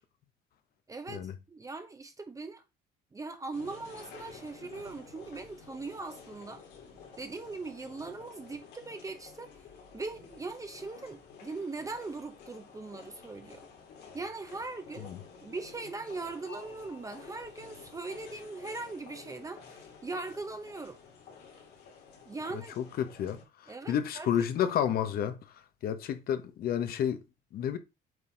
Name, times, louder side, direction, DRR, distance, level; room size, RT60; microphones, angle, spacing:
voice 1, 0.9-2.6 3.1-6.6 7.2-9.5 9.9-13.7 14.1-15.1 15.4-21.0 22.2-22.7 23.7-24.3 24.6-24.8, right 3 dB, 20° right, 0.8 m, -40 dB
sound 1, 3.5-23.4, left 5 dB, 80° left, 2.7 m, -51 dB
voice 2, 22.8-25.4 25.8-27.2 27.5-27.8, left 9 dB, 65° left, 1.0 m, -30 dB
8.0 x 4.0 x 3.9 m
cardioid pair, 110°, 17 cm